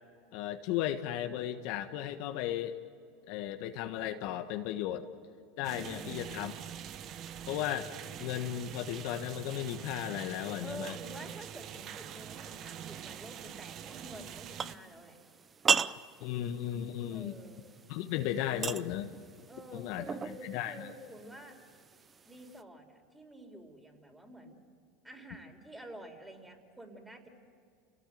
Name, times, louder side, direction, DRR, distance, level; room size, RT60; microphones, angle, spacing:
voice 1, 0.3-2.8 3.3-5.1 5.6-6.5 7.5-7.9 8.2-10.9 16.2-17.3 17.9-19.1 19.7-20.9, left 11 dB, 65° left, 7 dB, 1.4 m, -35 dB
sound 1, 5.6-14.8, right 9 dB, 45° right, 1.2 m, -44 dB
voice 2, 5.8-6.3 10.6-15.2 17.1-17.7 19.5-21.6 22.2-24.6 25.0-27.3, right 1 dB, 10° right, 3 dB, 4.6 m, -49 dB
sound 2, 13.1-22.6, right 6 dB, 25° right, 0.7 m, -38 dB
30.0 x 18.0 x 9.3 m, 2.3 s
hypercardioid pair, 95°, 0 cm